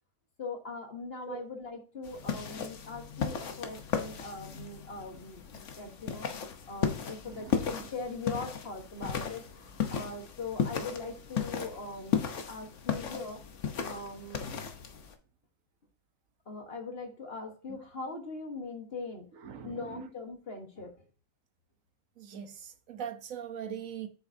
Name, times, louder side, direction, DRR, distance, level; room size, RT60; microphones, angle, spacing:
voice 1, 0.4-13.4 13.8-14.5 16.5-19.3 19.6-20.9, left 3 dB, 50° left, 1.5 m, -41 dB
sound 1, 2.1-15.1, left 7 dB, 65° left, 1.3 m, -35 dB
voice 2, 19.4-19.8 22.2-24.1, right 8 dB, 80° right, 1.3 m, -40 dB
8.4 x 6.8 x 2.7 m
omnidirectional pair, 1.4 m